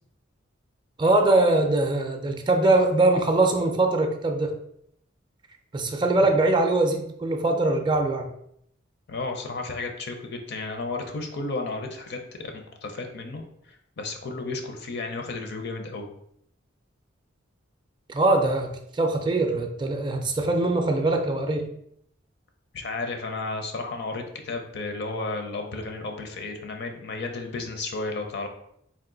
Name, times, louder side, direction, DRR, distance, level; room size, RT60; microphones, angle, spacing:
voice 1, 1.0-4.6 5.7-8.3 18.1-21.7, right 2 dB, 25° right, 4 dB, 0.4 m, -22 dB
voice 2, 9.1-13.4 14.0-16.1 22.7-28.5, left 3 dB, 60° left, 4 dB, 0.6 m, -33 dB
3.6 x 2.5 x 3.8 m, 0.73 s
head